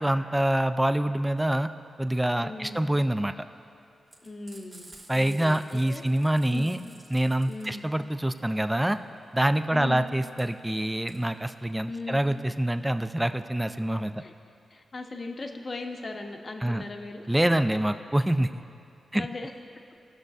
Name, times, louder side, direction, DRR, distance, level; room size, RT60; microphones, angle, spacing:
voice 1, 0.0-1.7 2.0-3.3 5.1-6.8 7.1-9.0 9.3-14.1 16.6-16.8 17.3-18.6 19.1-19.3, right 1 dB, 10° right, 10 dB, 0.4 m, -26 dB
voice 2, 2.4-2.8 4.2-6.0 6.5-6.8 7.5-7.8 9.7-10.1 11.9-12.2 14.2-14.3 14.7-17.2 19.1-19.5, left 3 dB, 45° left, 3 dB, 0.8 m, -38 dB
Frying (food), 4.1-12.8, right 1 dB, 30° right, 2.1 m, -52 dB
18.0 x 6.5 x 2.4 m, 2.5 s
cardioid pair, 70°, 0 cm